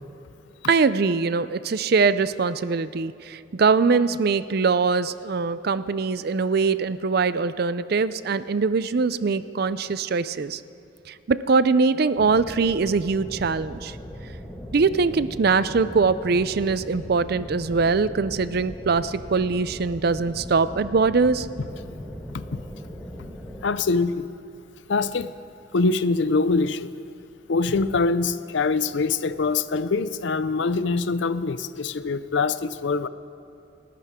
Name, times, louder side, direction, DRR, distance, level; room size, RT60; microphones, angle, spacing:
voice 1, 0.7-10.6 11.1-14.0 14.7-21.5, right 4 dB, 50° right, 15 dB, 0.4 m, -22 dB
sound 1, 12.2-23.6, equal, 5° left, 1.5 m, -39 dB
voice 2, 23.6-24.3 24.9-25.3 25.7-26.9 27.5-33.1, left 4 dB, 65° left, 14 dB, 0.5 m, -24 dB
29.0 x 13.5 x 3.7 m, 2.8 s
head